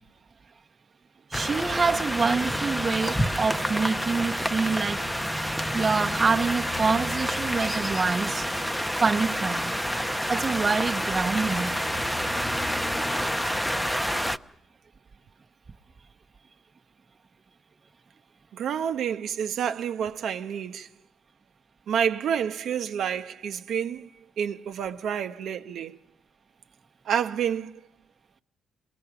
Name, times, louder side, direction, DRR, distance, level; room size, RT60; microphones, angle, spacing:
sound 1, 1.3-14.4, equal, 5° left, 0.8 m, -28 dB
voice 1, 1.3-5.0 5.7-8.5 9.0-9.7 10.3-11.8, right 4 dB, 30° right, 0.9 m, -26 dB
voice 2, 18.5-20.9 21.9-24.1 24.4-26.0 27.0-27.8, right 8 dB, 70° right, 0.8 m, -29 dB
27.0 x 21.0 x 5.9 m
cardioid pair, 90°, 0 cm